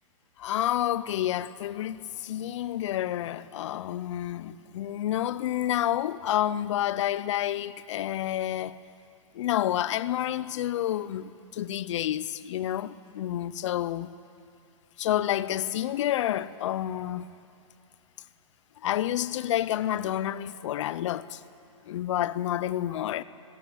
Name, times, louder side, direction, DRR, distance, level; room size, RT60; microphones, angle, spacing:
voice 1, 0.4-8.8 9.3-14.1 15.0-17.3 18.8-21.4 21.8-23.2, left 12 dB, 65° left, 0.7 m, -29 dB
18.5 x 15.5 x 9.1 m
hypercardioid pair, 135°, 17 cm